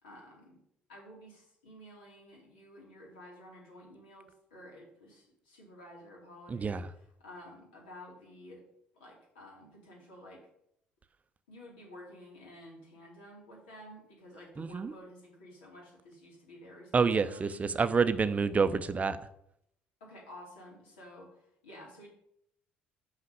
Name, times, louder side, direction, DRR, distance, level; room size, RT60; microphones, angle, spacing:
voice 1, 0.0-0.6 0.9-8.6 8.9-10.4 11.5-17.7 20.0-22.1, equal, 75° left, 2.9 m, -52 dB
voice 2, 6.5-6.9 14.6-14.9 16.9-19.2, right 5 dB, 30° right, 0.6 m, -28 dB
5.8 x 5.8 x 6.8 m
figure-of-eight pair, 50°, 5 cm